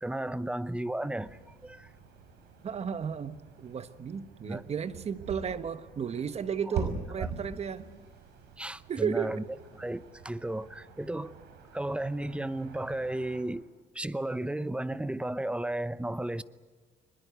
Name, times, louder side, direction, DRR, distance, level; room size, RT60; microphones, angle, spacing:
voice 1, 0.0-1.9 4.4-4.6 6.7-7.3 8.6-9.4 9.8-11.3 11.7-13.7 13.9-16.4, right 1 dB, 5° right, 0.8 m, -34 dB
sound 1, 1.2-13.4, right 6 dB, 85° right, 5.7 m, -44 dB
voice 2, 2.6-7.9 8.9-9.4, right 7 dB, 40° right, 1.3 m, -34 dB
23.5 x 21.0 x 8.1 m
cardioid pair, 110°, 17 cm